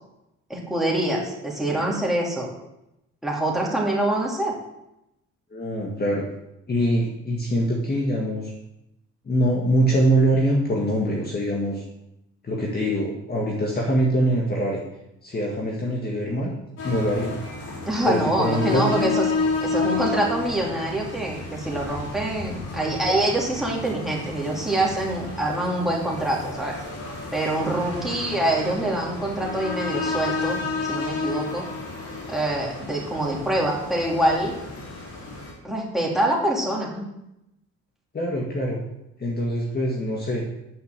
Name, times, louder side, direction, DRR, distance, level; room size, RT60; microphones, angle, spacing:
voice 1, 0.5-2.5 3.2-4.5 17.9-19.3 19.6-26.7 27.3-31.7 32.3-34.5 35.6-37.1, right 1 dB, ahead, -3 dB, 3.1 m, -25 dB
voice 2, 5.5-6.2 6.7-8.5 9.3-11.8 12.4-14.8 15.2-16.5 16.8-17.4 18.0-19.1 38.1-38.8 39.2-40.4, equal, 30° left, -2 dB, 1.9 m, -23 dB
sound 1, 16.8-35.5, left 3 dB, 55° left, 3.7 m, -31 dB
9.5 x 5.2 x 6.8 m, 0.86 s
cardioid pair, 90°, 30 cm